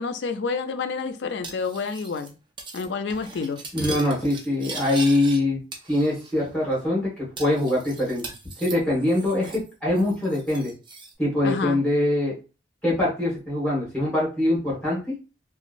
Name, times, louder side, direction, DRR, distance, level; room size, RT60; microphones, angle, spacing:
voice 1, 0.0-2.3 2.7-3.6 11.4-11.8, left 4 dB, 70° left, 8 dB, 0.4 m, -29 dB
Cutlery silverware, 1.4-2.3 2.6-2.9 3.1-5.4 5.7-6.4 6.7-6.8 7.4-9.7 9.9-11.1, right 3 dB, 25° right, 0.5 m, -39 dB
voice 2, 3.7-5.6 5.9-8.2 8.6-10.7 11.2-12.3 12.8-15.1, left 1 dB, 5° left, -6 dB, 1.3 m, -23 dB
2.9 x 2.4 x 2.5 m, 0.32 s
head